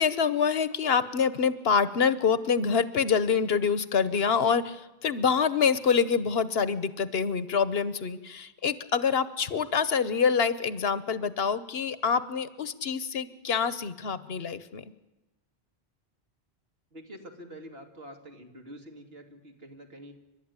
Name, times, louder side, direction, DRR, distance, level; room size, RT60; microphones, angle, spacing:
voice 1, 0.0-14.8, left 6 dB, 65° left, 15 dB, 1.1 m, -26 dB
voice 2, 16.9-20.1, equal, 65° right, 3 dB, 2.8 m, -46 dB
29.5 x 12.5 x 9.6 m, 1.0 s
omnidirectional pair, 1.1 m